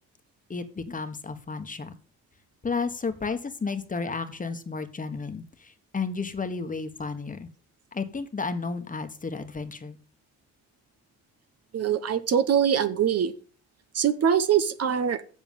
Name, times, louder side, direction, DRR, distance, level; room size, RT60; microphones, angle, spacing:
voice 1, 0.5-1.9 2.6-7.5 7.9-10.0, left 4 dB, 25° left, 8 dB, 1.4 m, -32 dB
voice 2, 11.7-13.3 13.9-15.2, right 8 dB, 55° right, 12 dB, 1.0 m, -23 dB
7.5 x 7.0 x 7.3 m, 0.40 s
cardioid pair, 90°, 30 cm